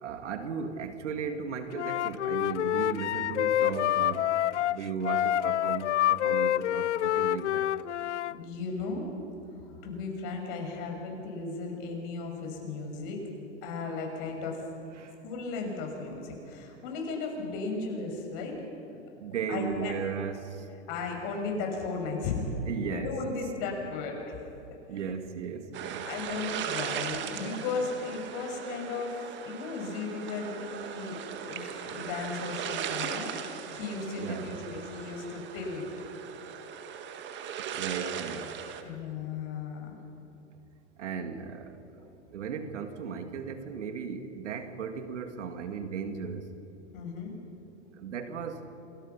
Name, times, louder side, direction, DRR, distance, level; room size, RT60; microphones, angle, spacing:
voice 1, 0.0-4.3 4.7-7.7 15.0-15.1 19.2-20.7 22.7-23.2 24.9-26.1 34.2-34.6 37.7-38.5 38.8-39.0 41.0-41.8 42.3-46.5 48.0-48.6, right 6 dB, 80° right, 7 dB, 2.3 m, -36 dB
Wind instrument woodwind instrument, 1.7-8.3, left 12 dB, 80° left, 0.6 m, -27 dB
voice 2, 8.3-9.1 9.6-13.2 13.6-14.6 15.2-18.6 19.5-20.0 20.9-22.5 22.9-24.4 26.0-33.4 33.7-35.9 38.8-40.0 42.0-42.1 46.9-47.4, left 4 dB, 50° left, 2 dB, 6.4 m, -35 dB
sound 1, 25.7-38.8, right 8 dB, 30° right, 1.8 m, -38 dB
28.5 x 21.5 x 5.8 m, 2.9 s
hypercardioid pair, 120°, 35 cm